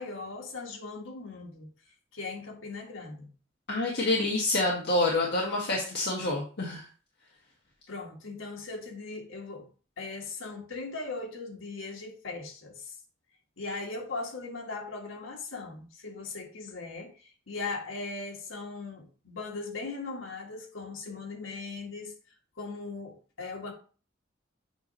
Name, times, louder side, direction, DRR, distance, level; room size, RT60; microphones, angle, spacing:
voice 1, 0.0-1.7 2.1-3.3 7.9-9.7 10.0-13.0 13.6-22.1 22.6-23.7, left 3 dB, 85° left, 1 dB, 1.5 m, -39 dB
voice 2, 3.7-6.8, left 2 dB, 60° left, -3 dB, 1.4 m, -27 dB
8.0 x 2.9 x 5.4 m, 0.38 s
head